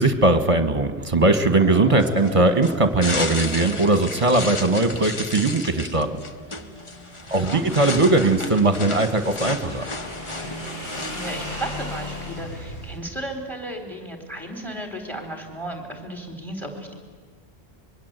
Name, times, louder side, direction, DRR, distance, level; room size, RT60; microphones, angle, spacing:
voice 1, 0.0-6.2 7.3-9.8, right 2 dB, 30° right, 9 dB, 1.6 m, -19 dB
sound 1, 1.6-8.5 8.9-9.4, left 1 dB, 85° left, 7.5 m, -44 dB
sound 2, 2.0-11.9, left 3 dB, 30° left, 1.1 m, -33 dB
Motorcycle / Engine, 6.0-13.0, left 1 dB, 50° left, 5.3 m, -37 dB
voice 2, 7.2-7.6 10.9-16.9, right 1 dB, ahead, 4 dB, 4.0 m, -34 dB
25.0 x 22.5 x 8.2 m, 1.5 s
omnidirectional pair, 1.0 m